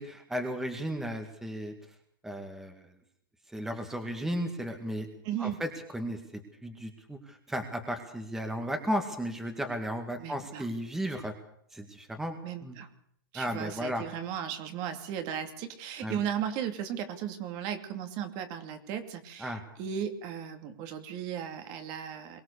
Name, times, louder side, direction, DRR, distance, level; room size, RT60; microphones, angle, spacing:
voice 1, 0.0-1.7 2.2-2.9 3.5-5.1 5.4-11.3 11.7-12.4 12.6-12.8 13.3-14.0 16.0-16.2 19.4-19.6, equal, 5° right, 6 dB, 2.0 m, -34 dB
voice 2, 5.2-5.6 10.2-10.7 12.4-12.9 13.3-22.4, right 9 dB, 35° right, 7 dB, 2.6 m, -36 dB
23.0 x 17.5 x 6.8 m, 0.67 s
hypercardioid pair, 150°, 11 cm